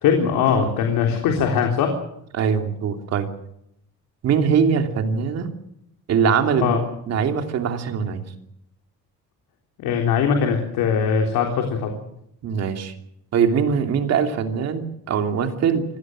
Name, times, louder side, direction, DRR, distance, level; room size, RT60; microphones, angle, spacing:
voice 1, 0.0-1.9 6.6-6.8 9.8-12.0, left 6 dB, 90° left, 2 dB, 3.7 m, -21 dB
voice 2, 2.3-3.3 4.2-5.5 6.1-6.7 7.1-8.2 12.4-12.9 13.3-15.8, right 6 dB, 50° right, 5 dB, 2.9 m, -22 dB
26.0 x 17.5 x 7.8 m, 0.76 s
cardioid pair, 180°, 33 cm